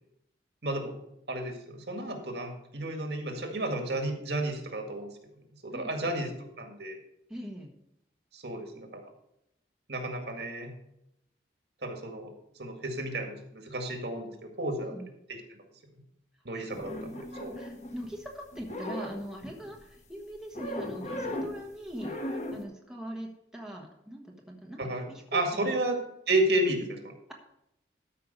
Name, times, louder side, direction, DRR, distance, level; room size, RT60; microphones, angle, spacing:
voice 1, 0.6-0.9 1.3-5.1 5.6-7.0 8.3-9.0 9.9-10.7 11.8-12.3 12.6-14.9 16.5-17.5 24.8-25.0 25.3-26.0 26.3-27.1, right 1 dB, 65° right, 4 dB, 2.0 m, -32 dB
voice 2, 5.7-6.1 7.3-7.7 14.9-15.1 16.5-25.7, equal, 5° right, 0 dB, 1.3 m, -42 dB
sound 1, 16.7-18.3 18.5-19.8 20.5-21.6 22.0-22.6, left 1 dB, 40° left, 1.4 m, -37 dB
13.0 x 5.7 x 5.4 m, 0.80 s
head